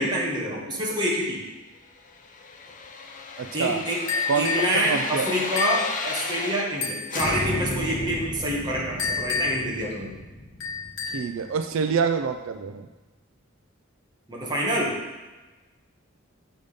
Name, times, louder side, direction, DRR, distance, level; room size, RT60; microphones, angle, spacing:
voice 1, 0.0-1.4 3.5-4.0 4.3-10.2 14.3-15.0, equal, 20° right, -4 dB, 1.7 m, -27 dB
sound 1, 2.1-6.8 7.1-12.0 12.3-12.4, left 2 dB, 40° left, 0.7 m, -34 dB
voice 2, 3.4-3.8 4.3-4.5 4.9-5.3 11.1-12.9, right 6 dB, 85° right, 8 dB, 0.4 m, -26 dB
sound 2, 4.1-4.7 5.6-5.9 6.8-7.5 9.0-9.7 10.6-11.3, left 5 dB, 75° left, 1.3 m, -28 dB
7.0 x 5.2 x 5.2 m, 1.2 s
head